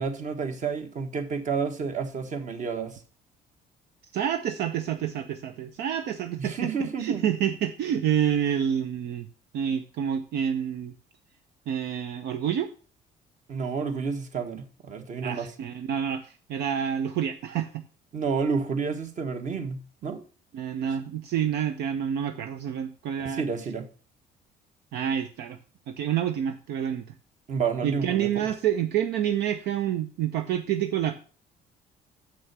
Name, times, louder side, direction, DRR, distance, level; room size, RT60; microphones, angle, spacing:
voice 1, 0.0-3.0 6.4-7.2 13.5-15.5 18.1-20.2 23.2-23.8 27.5-28.4, right 5 dB, 45° right, 1.5 m, -30 dB
voice 2, 4.1-6.7 7.0-9.3 9.5-10.9 11.7-12.7 15.2-17.8 20.5-23.4 24.9-25.6 25.9-27.0 27.8-31.1, right 9 dB, 75° right, 0.8 m, -28 dB
7.0 x 6.2 x 6.0 m
cardioid pair, 110°, 17 cm